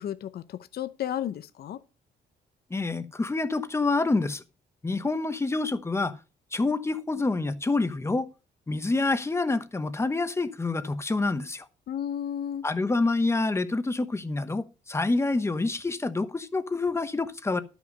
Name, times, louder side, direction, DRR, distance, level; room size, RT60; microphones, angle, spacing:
voice 1, 0.0-1.8 11.9-12.6, left 10 dB, 60° left, 0.7 m, -33 dB
voice 2, 2.7-4.4 4.8-6.2 6.5-8.3 8.7-11.7 12.6-17.6, left 3 dB, 15° left, 1.0 m, -27 dB
12.5 x 6.2 x 5.4 m
cardioid pair, 130°, 18 cm